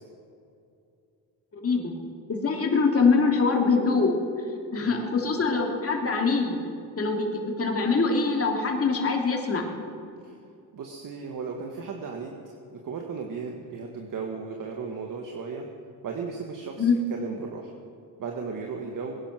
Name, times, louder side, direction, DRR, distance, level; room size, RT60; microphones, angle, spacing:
voice 1, 1.5-1.9 2.3-4.2 4.7-6.6 7.0-9.6 16.8-17.0, left 4 dB, 35° left, 1 dB, 3.2 m, -23 dB
voice 2, 10.7-12.4 12.7-15.7 16.0-17.7 18.2-19.2, right 5 dB, 50° right, 2 dB, 1.8 m, -35 dB
21.5 x 10.5 x 6.2 m, 2.5 s
supercardioid pair, 85°, 41 cm